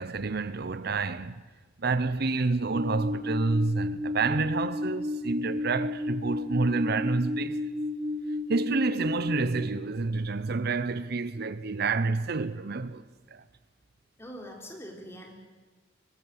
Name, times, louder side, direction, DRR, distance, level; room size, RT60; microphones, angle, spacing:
voice 1, 0.0-1.4 1.8-7.7 8.5-13.0 13.3-13.4, right 3 dB, 60° right, 0.7 m, -29 dB
sound 1, 2.7-9.4, left 2 dB, 30° right, 3.5 m, -32 dB
voice 2, 14.2-15.3, equal, 15° left, 4.0 m, -43 dB
24.0 x 19.5 x 7.9 m
head